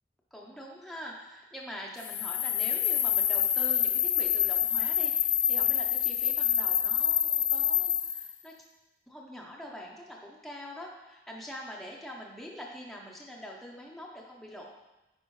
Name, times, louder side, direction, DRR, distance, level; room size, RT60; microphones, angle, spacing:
voice 1, 0.3-8.5 9.1-14.7, equal, ahead, -2 dB, 0.7 m, -44 dB
sound 1, 2.0-8.3, left 10 dB, 45° left, 0.4 m, -27 dB
9.8 x 4.7 x 3.1 m, 1.0 s
head